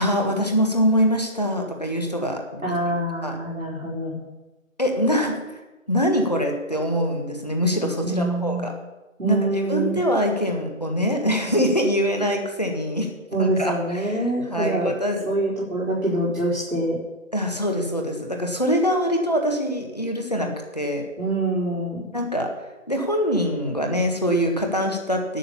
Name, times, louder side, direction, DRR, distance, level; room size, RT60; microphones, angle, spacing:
voice 1, 0.0-2.4 2.7-2.8 3.2-3.4 4.8-5.6 5.9-8.7 9.3-13.1 13.4-14.2 14.5-15.2 17.3-21.0 22.1-22.5 22.9-25.4, equal, 30° left, 3 dB, 1.6 m, -23 dB
voice 2, 2.6-4.3 8.0-8.7 9.2-10.0 13.3-14.9 15.3-17.0 21.2-22.1, right 2 dB, 75° right, -6 dB, 4.4 m, -25 dB
12.0 x 6.4 x 8.5 m, 1.1 s
figure-of-eight pair, 175°, 41 cm